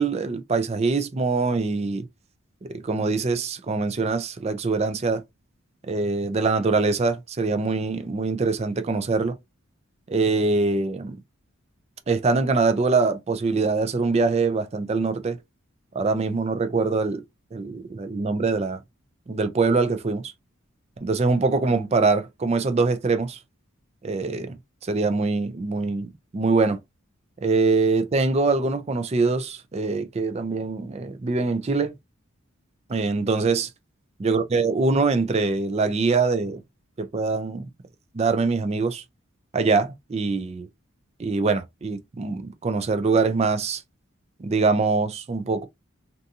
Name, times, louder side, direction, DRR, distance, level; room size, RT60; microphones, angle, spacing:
voice 1, 0.0-2.1 2.7-5.2 5.8-9.4 10.1-11.2 12.1-15.4 15.9-17.2 17.5-18.8 19.3-20.3 21.0-23.4 24.0-24.6 24.8-26.8 27.4-31.9 32.9-33.7 34.2-36.6 37.0-37.6 38.1-39.0 39.5-40.7 41.2-43.8 44.4-45.7, right 4 dB, 30° right, 0.4 m, -23 dB
2.6 x 2.4 x 2.6 m
head